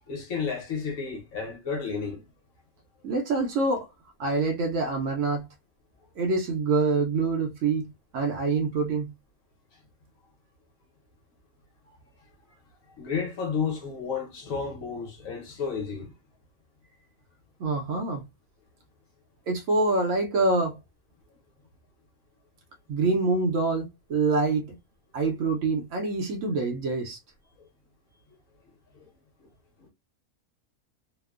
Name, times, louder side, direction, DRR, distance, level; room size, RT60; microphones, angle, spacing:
voice 1, 0.1-2.2 8.2-8.4 11.9-12.0 13.0-16.1 27.6-27.7 29.0-29.1 29.8-29.9, left 6 dB, 65° left, 1.1 m, -32 dB
voice 2, 3.0-3.9 4.2-5.5 6.2-9.1 17.6-18.3 19.5-20.8 22.9-24.8 25.1-27.2, right 3 dB, 65° right, 0.8 m, -26 dB
2.8 x 2.0 x 2.2 m
omnidirectional pair, 1.5 m